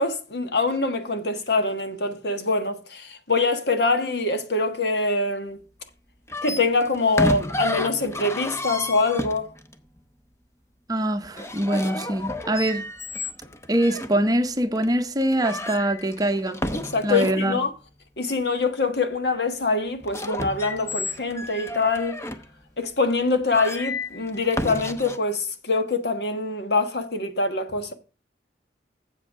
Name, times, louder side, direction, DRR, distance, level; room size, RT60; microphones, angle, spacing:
voice 1, 0.0-5.6 6.4-9.5 16.7-17.7 18.2-22.2 22.8-27.9, left 3 dB, 65° left, 1.5 m, -24 dB
sound 1, 6.3-9.7 11.2-14.1 14.8-14.9 15.2-17.5 20.0-22.5 23.1-23.2 23.5-25.2, left 1 dB, 15° left, 0.7 m, -31 dB
voice 2, 10.9-12.9 13.7-16.6 17.0-17.6, right 1 dB, 20° right, 0.8 m, -23 dB
7.8 x 7.7 x 4.8 m
head